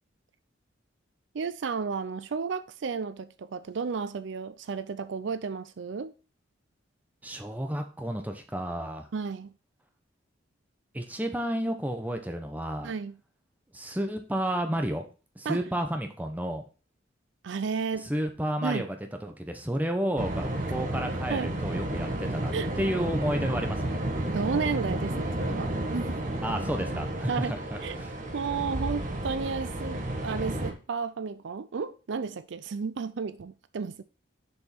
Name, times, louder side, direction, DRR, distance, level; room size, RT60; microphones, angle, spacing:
voice 1, 1.3-6.1 9.1-9.5 12.8-13.2 15.5-15.6 17.4-18.1 18.6-18.9 21.3-21.5 22.5-22.7 24.3-26.2 27.3-27.6 27.8-28.0 28.3-34.0, right 5 dB, 65° right, 0.4 m, -32 dB
voice 2, 7.2-9.1 10.9-12.9 13.7-15.1 15.3-16.6 18.0-24.0 26.4-28.1, equal, 10° right, 1.0 m, -31 dB
sound 1, 20.2-30.7, right 1 dB, 40° right, 1.4 m, -32 dB
6.8 x 5.3 x 4.4 m
head